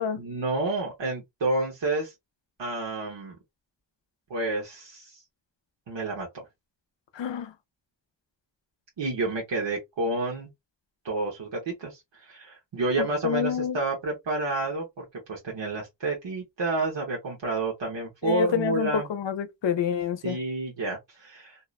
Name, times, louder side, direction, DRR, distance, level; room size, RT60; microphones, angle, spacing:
voice 1, 0.2-2.1 2.6-3.4 4.3-5.2 5.9-6.3 9.0-10.5 11.0-19.1 20.2-21.6, right 2 dB, 90° right, 1.1 m, -30 dB
voice 2, 7.1-7.5 13.0-13.8 18.2-20.4, left 7 dB, 85° left, 0.6 m, -28 dB
2.7 x 2.0 x 2.3 m
wide cardioid pair, 90°, 43 cm